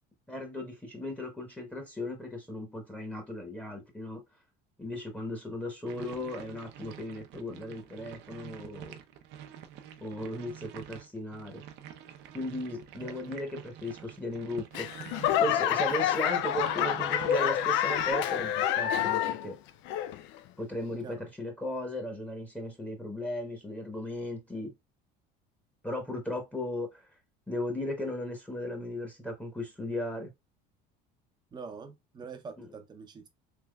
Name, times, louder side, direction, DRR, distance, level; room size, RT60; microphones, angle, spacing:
voice 1, 0.3-4.2 4.8-8.9 10.0-11.6 12.3-14.9 15.4-19.6 20.6-24.7 25.8-27.1 27.5-30.3, left 1 dB, 5° left, 1.0 m, -36 dB
sound 1, 5.9-18.1, right 10 dB, 60° right, 0.6 m, -47 dB
voice 2, 13.0-13.3 21.0-21.2 31.5-33.3, right 5 dB, 20° right, 0.6 m, -45 dB
Laughter / Clapping / Crowd, 14.7-19.5 19.8-20.4 20.9-21.0, left 11 dB, 65° left, 0.4 m, -28 dB
3.5 x 3.0 x 2.3 m
supercardioid pair, 115°, 20 cm